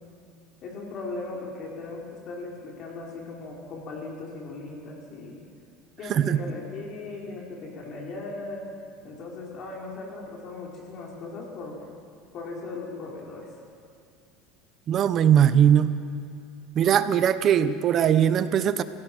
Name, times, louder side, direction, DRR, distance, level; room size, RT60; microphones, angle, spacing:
voice 1, 0.6-5.4 6.0-8.6 9.0-11.8 12.3-13.5, left 3 dB, 45° left, -2 dB, 4.4 m, -38 dB
voice 2, 14.9-15.9 16.7-18.8, right 9 dB, 40° right, 13 dB, 0.9 m, -20 dB
29.5 x 17.0 x 6.2 m, 2.3 s
supercardioid pair, 135°, 0 cm